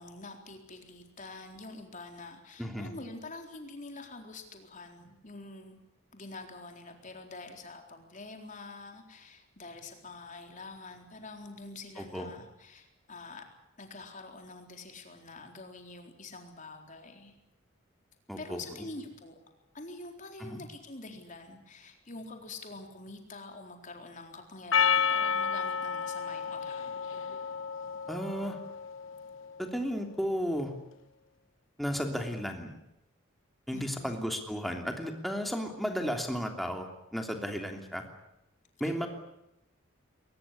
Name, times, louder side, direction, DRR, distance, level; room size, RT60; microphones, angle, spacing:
voice 1, 0.0-5.8 6.1-13.4 13.8-17.3 18.4-19.4 19.7-27.0 33.7-34.2 38.8-39.1, left 3 dB, 40° left, 4 dB, 4.1 m, -46 dB
voice 2, 2.6-2.9 12.0-12.4 18.3-18.6 20.4-20.6 28.1-28.6 29.6-30.7 31.8-32.8 33.7-38.0 38.8-39.1, equal, ahead, 3 dB, 3.0 m, -34 dB
Percussion, 24.7-29.3, left 7 dB, 70° left, 1.1 m, -31 dB
22.0 x 20.5 x 9.8 m, 0.86 s
head